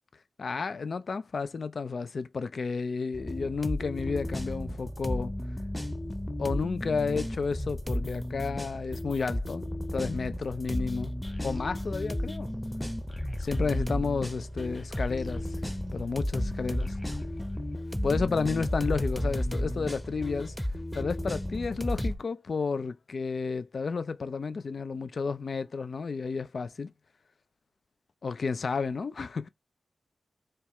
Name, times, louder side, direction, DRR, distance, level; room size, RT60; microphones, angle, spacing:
voice 1, 0.4-5.3 6.4-11.1 11.4-12.5 13.4-15.6 15.9-16.9 18.0-20.5 20.9-26.9 28.2-29.5, left 5 dB, 65° left, 0.3 m, -32 dB
sound 1, 3.1-22.2, left 1 dB, 10° left, 0.7 m, -33 dB
sound 2, 11.2-16.4 16.7-18.4, left 2 dB, 30° left, 1.4 m, -46 dB
4.4 x 2.3 x 3.0 m
cardioid pair, 45°, 0 cm